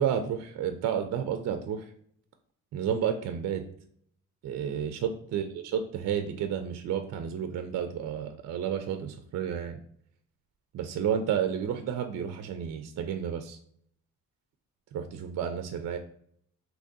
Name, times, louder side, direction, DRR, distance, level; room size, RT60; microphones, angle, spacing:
voice 1, 0.0-1.9 2.7-3.6 4.4-9.8 10.7-13.6 14.9-16.0, right 8 dB, 50° right, 7 dB, 0.4 m, -31 dB
3.7 x 2.9 x 2.6 m, 0.65 s
cardioid pair, 120°, 34 cm